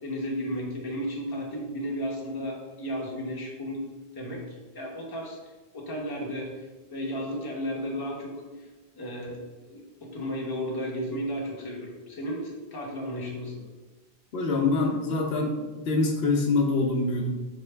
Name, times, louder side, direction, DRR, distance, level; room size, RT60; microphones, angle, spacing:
voice 1, 0.0-3.8 4.1-4.4 4.7-5.4 5.7-6.5 6.9-8.6 8.9-9.4 9.7-13.6, equal, 25° left, -2 dB, 0.8 m, -33 dB
voice 2, 14.3-15.6 15.9-17.3, left 3 dB, 75° left, 0 dB, 0.9 m, -24 dB
4.3 x 3.3 x 3.3 m, 1.2 s
omnidirectional pair, 1.0 m